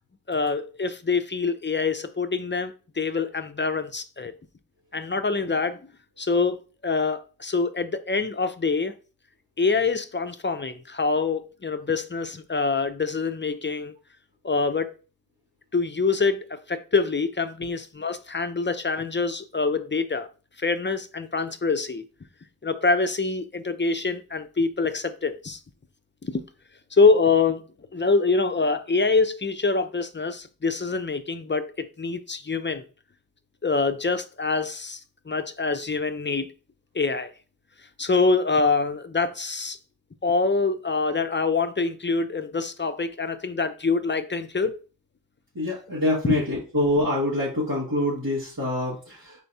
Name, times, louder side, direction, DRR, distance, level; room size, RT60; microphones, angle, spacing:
voice 1, 0.3-4.3 4.9-5.8 6.2-8.9 9.6-13.9 14.4-15.0 15.7-20.3 20.6-22.0 22.6-25.6 26.2-26.4 26.9-27.6 27.9-32.8 33.6-35.0 35.3-36.5 36.9-37.3 38.0-39.8 40.2-44.8 46.2-46.3, left 4 dB, 30° left, 0.5 m, -25 dB
voice 2, 45.6-49.4, left 1 dB, 75° right, 1.8 m, -25 dB
4.4 x 4.3 x 2.7 m
wide cardioid pair, 50°, 35 cm